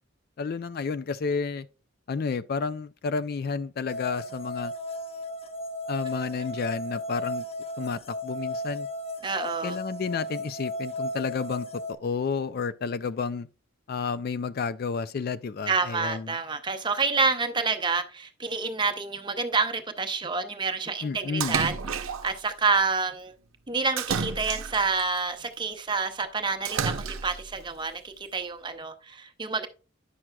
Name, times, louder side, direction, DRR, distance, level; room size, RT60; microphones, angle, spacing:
voice 1, 0.4-1.7 2.1-4.7 5.9-7.5 7.8-8.9 9.6-11.7 12.0-13.5 13.9-16.3 21.0-21.6, left 5 dB, 45° left, 0.3 m, -31 dB
sound 1, 3.9-11.9, left 1 dB, 30° left, 0.7 m, -35 dB
voice 2, 9.2-9.8 15.7-23.3 23.7-29.7, right 4 dB, 20° right, 0.7 m, -28 dB
Splash splatter, 21.4-22.4 24.0-25.0 26.7-27.5, right 6 dB, 75° right, 0.6 m, -30 dB
9.9 x 6.1 x 2.2 m
head